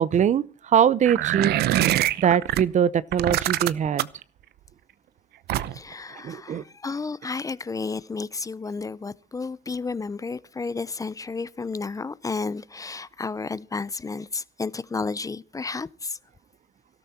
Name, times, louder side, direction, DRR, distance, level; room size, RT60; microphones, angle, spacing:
voice 1, 0.0-1.6 1.9-4.1 6.2-6.6, right 8 dB, 45° right, 0.8 m, -22 dB
sound 1, 1.0-2.6 3.1-4.2 5.5-5.9, right 14 dB, 70° right, 0.8 m, -24 dB
voice 2, 5.7-16.2, left 4 dB, 20° left, 0.7 m, -32 dB
19.5 x 13.0 x 4.3 m
cardioid pair, 110°, 17 cm